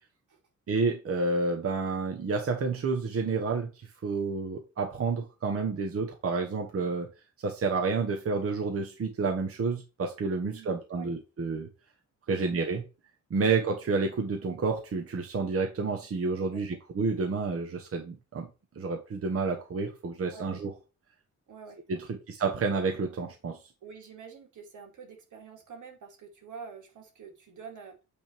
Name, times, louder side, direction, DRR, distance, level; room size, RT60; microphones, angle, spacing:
voice 1, 0.7-3.7 4.0-7.1 7.4-11.7 12.3-12.8 13.3-18.5 18.7-20.7 21.9-23.6, right 4 dB, 50° right, 1.1 m, -29 dB
voice 2, 10.4-11.1 12.3-12.4 16.5-16.6 20.3-20.5 21.5-21.8 22.1-22.2 23.8-28.0, right 6 dB, 80° right, 2.4 m, -47 dB
8.5 x 3.4 x 4.4 m
wide cardioid pair, 155°, 30 cm